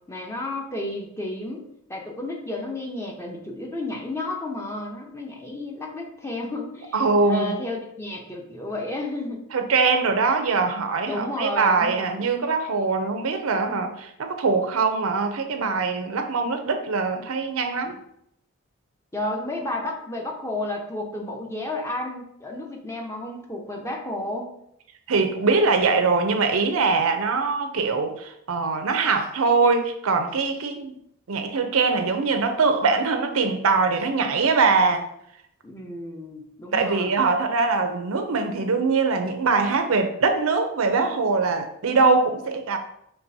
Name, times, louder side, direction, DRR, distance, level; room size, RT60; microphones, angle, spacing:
voice 1, 0.1-1.6 1.9-9.5 11.1-12.3 19.1-24.5 35.6-37.1, left 2 dB, 15° left, 0 dB, 0.6 m, -32 dB
voice 2, 6.9-7.6 9.5-18.0 25.1-30.9 31.3-35.1 36.7-42.8, right 4 dB, 80° right, 6 dB, 0.6 m, -22 dB
5.9 x 3.3 x 2.7 m, 0.74 s
head